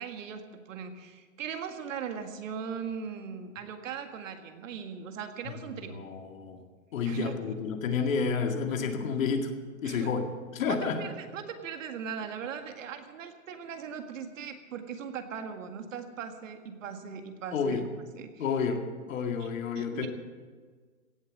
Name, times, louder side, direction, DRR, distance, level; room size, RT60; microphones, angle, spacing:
voice 1, 0.0-6.0 7.0-7.4 9.8-10.1 10.7-17.8 18.2-18.4 19.4-20.1, right 7 dB, 65° right, 6 dB, 1.9 m, -39 dB
voice 2, 5.9-6.6 6.9-9.5 9.8-11.0 17.5-17.9 18.4-20.1, left 5 dB, 70° left, 4 dB, 2.2 m, -30 dB
16.5 x 7.7 x 9.1 m, 1.5 s
hypercardioid pair, 160°, 41 cm